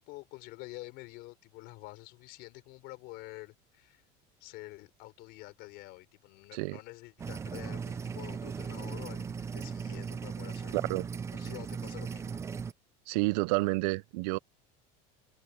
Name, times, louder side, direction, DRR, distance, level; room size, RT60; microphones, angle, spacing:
voice 1, 0.0-4.0 4.4-10.8 11.3-12.4, left 21 dB, 50° left, 4.7 m, -48 dB
sound 1, 7.2-12.7, right 6 dB, 15° right, 0.6 m, -38 dB
voice 2, 10.7-11.1 13.1-14.4, right 23 dB, 70° right, 0.7 m, -29 dB
cardioid pair, 170°, 21 cm